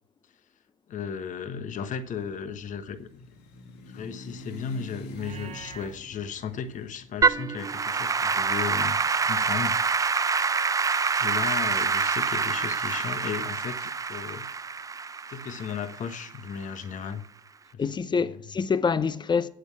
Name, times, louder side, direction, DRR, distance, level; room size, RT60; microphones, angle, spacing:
voice 1, 0.9-3.3 3.9-9.0 9.2-9.9 11.2-14.5 15.3-17.2 17.7-17.8, left 7 dB, 45° left, 1.3 m, -35 dB
sound 1, 1.6-9.6, equal, 70° left, 2.0 m, -47 dB
Livestock farm animals working animals, 5.1-6.0, right 6 dB, 40° right, 0.8 m, -44 dB
Applause / Keyboard (musical), 7.2-16.5, right 5 dB, 20° right, 0.5 m, -26 dB
voice 2, 17.8-19.5, left 5 dB, 25° left, 0.8 m, -26 dB
8.3 x 8.0 x 8.8 m
supercardioid pair, 80°, 18 cm